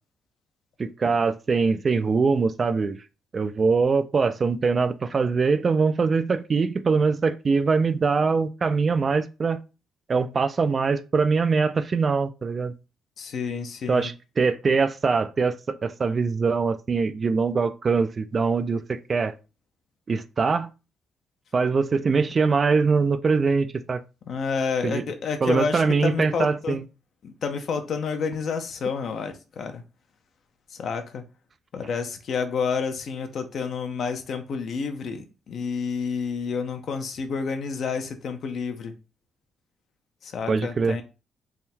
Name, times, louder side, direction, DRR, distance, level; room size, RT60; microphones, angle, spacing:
voice 1, 0.8-3.0 3.3-9.6 10.1-12.7 13.9-19.3 20.1-20.7 21.5-24.0 24.8-25.0 25.4-26.8 40.5-41.0, right 4 dB, 40° right, 0.3 m, -23 dB
voice 2, 13.2-14.1 24.2-26.8 27.2-29.8 30.7-31.2 31.7-38.9 40.2-41.0, left 5 dB, 60° left, 0.7 m, -29 dB
3.6 x 2.2 x 4.3 m
cardioid pair, 90°, 0 cm